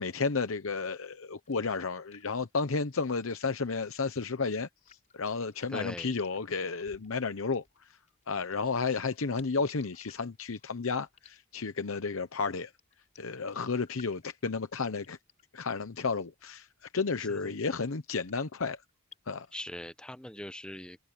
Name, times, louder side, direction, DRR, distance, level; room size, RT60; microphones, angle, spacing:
voice 1, 0.0-8.0 8.3-12.7 13.2-15.2 15.5-18.8 19.3-19.5, left 4 dB, 80° left, 0.9 m, -32 dB
sound 1, 1.5-19.6, left 6 dB, 35° left, 5.2 m, -61 dB
voice 2, 5.7-6.1 17.3-17.6 19.5-21.0, left 1 dB, 5° left, 0.8 m, -41 dB
head